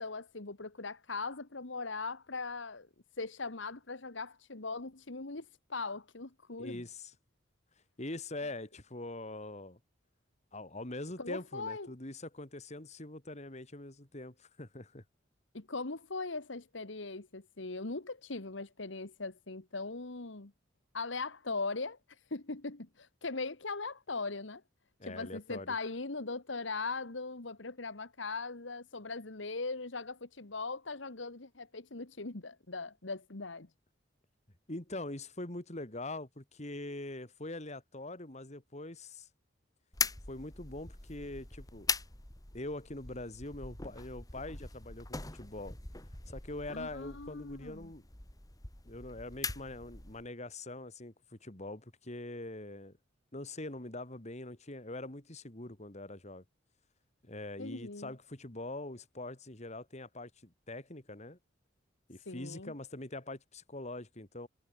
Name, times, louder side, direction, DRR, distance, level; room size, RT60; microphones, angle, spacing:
voice 1, 0.0-2.9 3.2-6.8 11.2-11.9 15.5-20.5 20.9-22.0 22.3-24.6 25.1-33.7 46.7-47.9 57.6-58.1 62.3-62.7, left 3 dB, 70° left, 1.6 m, -40 dB
voice 2, 6.6-7.1 8.0-9.8 10.5-15.0 25.0-25.7 34.7-39.3 40.3-41.9 42.5-45.8 46.3-48.1 48.8-53.0 53.3-56.4 57.2-61.4 62.1-64.5, left 2 dB, 35° left, 2.6 m, -43 dB
sound 1, 39.9-50.3, left 4 dB, 20° left, 1.9 m, -41 dB
head